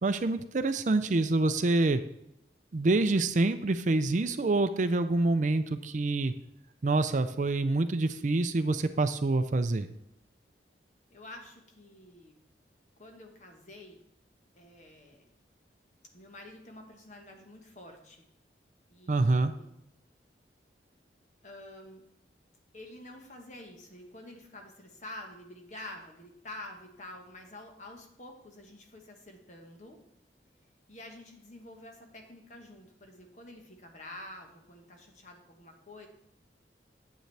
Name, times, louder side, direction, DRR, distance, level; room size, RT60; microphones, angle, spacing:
voice 1, 0.0-2.0 2.7-6.3 6.8-9.9 19.1-19.5, right 2 dB, 45° right, 10 dB, 0.4 m, -26 dB
voice 2, 11.1-12.4 13.0-14.0 14.6-15.3 16.1-18.2 18.9-19.7 21.4-22.0 22.7-30.0 30.9-36.1, left 1 dB, 40° left, 3 dB, 1.3 m, -48 dB
9.0 x 8.1 x 3.3 m, 0.78 s
head